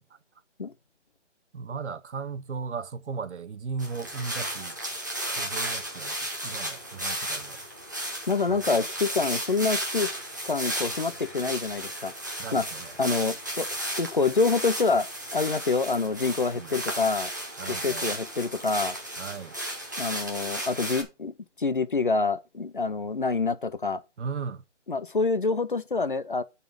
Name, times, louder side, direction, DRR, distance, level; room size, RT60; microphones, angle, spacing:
voice 1, 1.5-4.8 5.3-7.6 8.5-8.8 12.4-12.9 16.6-16.7 17.6-18.1 19.2-19.6 24.2-24.6, right 5 dB, 70° right, 0.8 m, -36 dB
sound 1, 3.8-21.0, right 1 dB, 15° right, 0.8 m, -34 dB
voice 2, 8.3-10.1 10.5-12.1 12.5-12.7 13.0-13.7 14.0-15.1 15.3-17.3 17.7-19.0 20.0-24.0 24.9-26.4, left 4 dB, 45° left, 0.5 m, -26 dB
10.5 x 4.2 x 5.2 m
hypercardioid pair, 175°, 36 cm